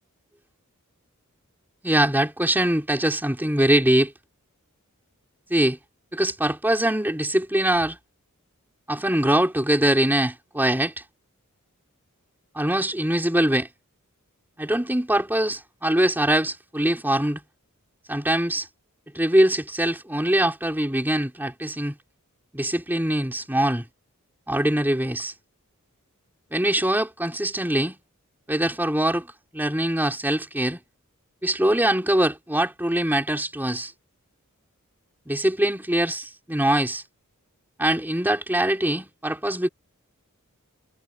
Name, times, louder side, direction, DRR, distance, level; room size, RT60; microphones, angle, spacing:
voice 1, 1.8-4.1 5.5-5.8 6.1-8.0 8.9-10.9 12.5-13.7 14.6-17.4 18.1-18.7 19.1-22.0 22.5-23.8 24.5-25.3 26.5-28.0 28.5-29.3 29.5-30.8 31.4-33.9 35.3-37.0 37.8-39.7, right 1 dB, 10° right, 3.9 m, -23 dB
head